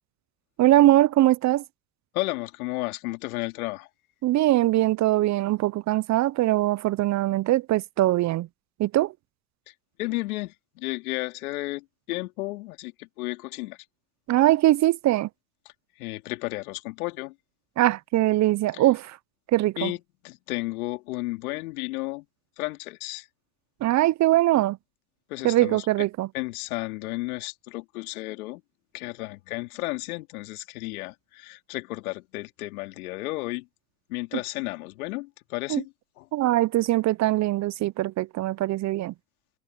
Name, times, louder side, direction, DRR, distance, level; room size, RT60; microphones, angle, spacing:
voice 1, 0.6-1.6 4.2-8.5 8.8-9.1 14.3-15.3 17.8-19.2 19.5-19.9 23.8-24.8 25.4-26.3 35.7-35.8 36.3-39.1, right 15 dB, 40° right, 0.7 m, -22 dB
voice 2, 2.1-3.9 9.7-9.8 10.0-13.8 16.0-17.3 18.7-18.9 19.8-22.2 22.6-23.3 25.3-26.1 26.3-28.6 28.9-33.7 34.1-36.3, left 21 dB, 70° left, 2.9 m, -33 dB
hypercardioid pair, 80°, 45 cm